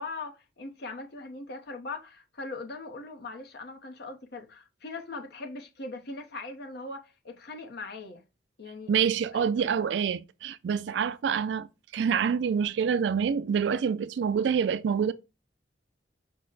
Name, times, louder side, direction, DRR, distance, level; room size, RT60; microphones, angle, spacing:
voice 1, 0.0-8.2 8.6-8.9 9.3-9.5 9.8-9.9, left 3 dB, 65° left, 0.8 m, -40 dB
voice 2, 8.9-15.1, right 7 dB, 80° right, 0.3 m, -27 dB
5.4 x 2.1 x 3.8 m
head